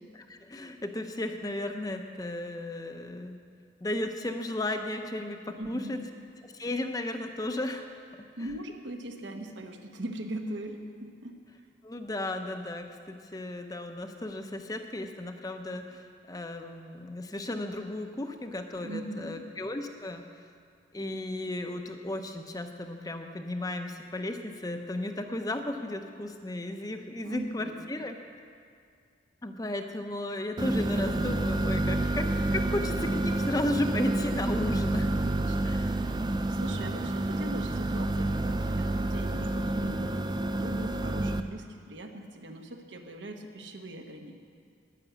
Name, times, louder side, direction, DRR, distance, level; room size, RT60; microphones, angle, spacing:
voice 1, 0.3-3.4 3.8-6.0 6.4-7.8 8.4-8.5 11.8-20.2 20.9-28.2 29.4-35.1 35.6-36.0 36.8-36.9, left 1 dB, 20° left, 6 dB, 0.7 m, -34 dB
voice 2, 5.6-6.1 8.4-11.6 18.8-19.5 27.2-27.9 35.2-44.3, right 1 dB, 75° right, 4 dB, 1.2 m, -40 dB
sound 1, 30.6-41.4, right 2 dB, 20° right, 0.4 m, -29 dB
11.0 x 10.5 x 8.2 m, 2.2 s
head